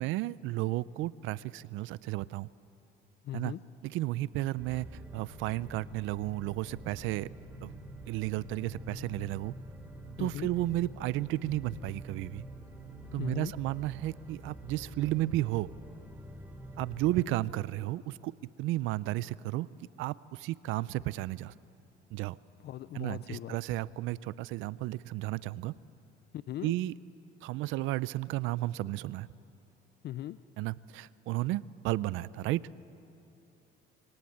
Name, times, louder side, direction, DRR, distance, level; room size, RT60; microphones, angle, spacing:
voice 1, 0.0-2.5 3.3-3.5 3.8-4.9 5.1-7.3 7.6-7.7 8.1-9.5 10.2-12.4 13.1-15.7 16.8-18.3 18.6-19.7 20.0-21.5 22.1-22.4 22.9-25.7 26.6-26.9 27.4-29.3 30.6-32.7, right 16 dB, 75° right, 20 dB, 0.5 m, -33 dB
voice 2, 3.2-3.6 10.2-10.5 13.2-13.5 22.6-23.6 26.3-26.7 30.0-30.4, left 13 dB, 55° left, 15 dB, 0.5 m, -39 dB
sound 1, 4.6-17.3, right 1 dB, 10° right, 2.8 m, -47 dB
22.0 x 18.5 x 8.7 m, 3.0 s
cardioid pair, 105°, 20 cm